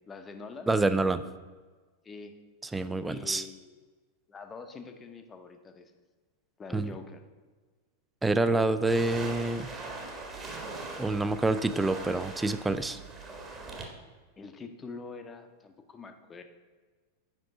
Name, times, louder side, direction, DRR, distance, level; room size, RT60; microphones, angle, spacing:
voice 1, 0.1-0.7 2.0-2.3 3.0-3.8 4.3-5.9 6.6-7.2 14.4-16.4, left 4 dB, 20° left, 7 dB, 0.8 m, -45 dB
voice 2, 0.7-1.2 2.7-3.4 6.7-7.0 8.2-9.7 11.0-13.0, right 2 dB, 10° right, 12 dB, 0.4 m, -27 dB
sound 1, 8.9-13.9, right 3 dB, 25° right, 1.4 m, -41 dB
7.7 x 5.3 x 5.1 m, 1.4 s
figure-of-eight pair, 90°, 0 cm